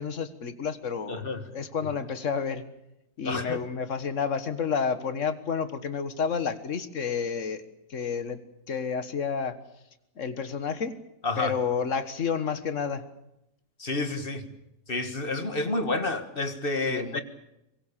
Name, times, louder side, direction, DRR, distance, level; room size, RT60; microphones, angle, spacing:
voice 1, 0.0-1.2 1.5-2.6 3.2-7.6 7.9-8.4 8.7-9.6 10.2-11.0 11.4-13.1 16.9-17.2, left 6 dB, 50° left, 12 dB, 1.8 m, -30 dB
voice 2, 1.1-1.6 3.3-3.6 11.2-11.5 13.8-14.5 14.9-17.2, left 2 dB, 35° left, 9 dB, 1.9 m, -29 dB
24.5 x 22.0 x 6.8 m, 0.87 s
omnidirectional pair, 1.7 m